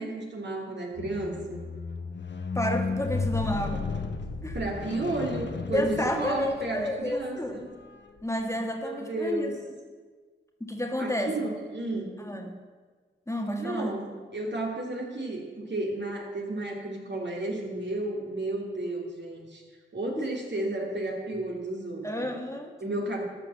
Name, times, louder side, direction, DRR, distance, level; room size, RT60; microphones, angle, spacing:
voice 1, 0.0-1.6 4.5-7.7 8.8-9.5 11.0-12.1 13.6-19.6 19.9-22.3 22.8-23.2, right 2 dB, 60° right, 0 dB, 2.5 m, -32 dB
Squeak, 1.0-7.3 8.1-8.2, left 4 dB, 60° left, 0.9 m, -34 dB
voice 2, 2.5-3.8 4.4-4.6 5.7-7.6 8.2-9.5 10.6-11.4 12.2-12.5 13.3-14.0 22.0-22.8, equal, 15° left, 3 dB, 1.5 m, -30 dB
12.5 x 5.5 x 7.4 m, 1.4 s
cardioid pair, 45°, 21 cm